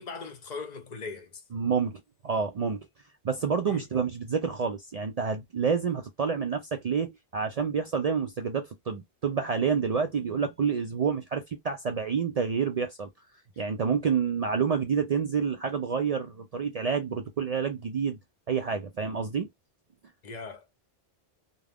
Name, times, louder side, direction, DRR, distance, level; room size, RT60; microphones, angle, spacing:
voice 1, 0.0-1.4 3.6-3.9 20.2-20.7, left 4 dB, 45° left, 0.6 m, -39 dB
voice 2, 1.5-2.8 3.2-13.1 13.6-18.2 18.5-19.5, right 6 dB, 75° right, 0.3 m, -28 dB
2.4 x 2.2 x 3.3 m
omnidirectional pair, 1.2 m